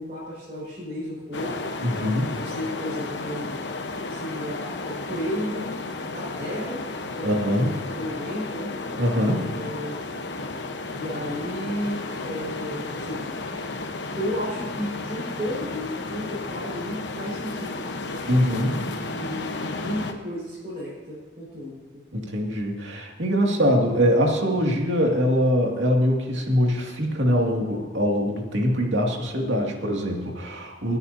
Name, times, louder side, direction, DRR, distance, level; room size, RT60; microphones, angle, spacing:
voice 1, 0.0-2.0 2.4-3.6 4.1-5.7 6.1-8.7 9.4-9.9 10.9-13.3 14.2-18.2 18.8-22.0, equal, 35° right, -10 dB, 5.4 m, -33 dB
sound 1, 1.3-20.1, left 3 dB, 75° left, 1.1 m, -33 dB
voice 2, 1.8-2.4 7.2-7.8 9.0-9.5 18.3-18.8 22.1-31.0, equal, 85° right, 0 dB, 2.4 m, -23 dB
29.0 x 9.7 x 2.8 m, 1.4 s
head